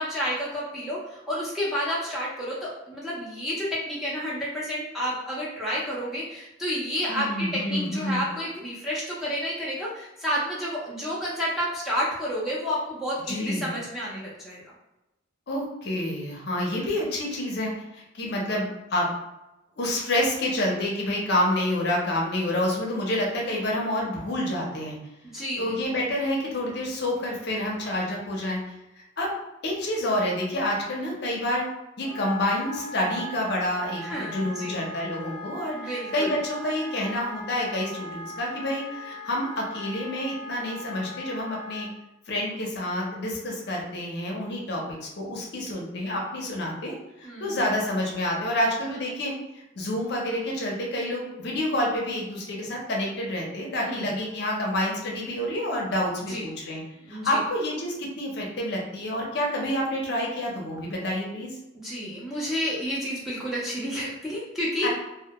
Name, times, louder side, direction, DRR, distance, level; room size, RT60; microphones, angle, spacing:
voice 1, 0.0-14.6 25.2-25.8 34.0-34.9 35.7-36.4 47.2-47.6 53.8-54.1 56.2-56.4 57.1-57.4 61.7-64.9, equal, ahead, -7 dB, 0.4 m, -30 dB
voice 2, 7.1-8.2 13.3-13.7 15.5-19.1 19.8-25.0 25.6-29.3 29.6-31.7 32.0-41.9 42.3-56.8 57.1-61.6 64.8-64.9, left 1 dB, 55° left, -2 dB, 0.5 m, -28 dB
Wind instrument woodwind instrument, 32.0-41.9, left 1 dB, 25° right, 0.8 m, -39 dB
2.1 x 2.0 x 2.8 m, 0.94 s
head